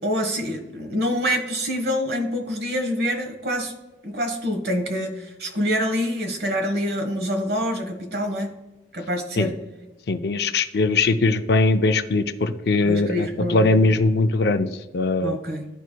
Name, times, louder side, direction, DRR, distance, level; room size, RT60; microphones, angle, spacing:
voice 1, 0.0-3.7 4.0-8.6 8.9-9.6 12.8-13.7 15.2-15.7, equal, 60° right, 4 dB, 1.2 m, -26 dB
voice 2, 10.1-14.7 14.9-15.4, left 3 dB, 60° left, 9 dB, 0.5 m, -20 dB
13.5 x 4.6 x 2.2 m, 1.1 s
head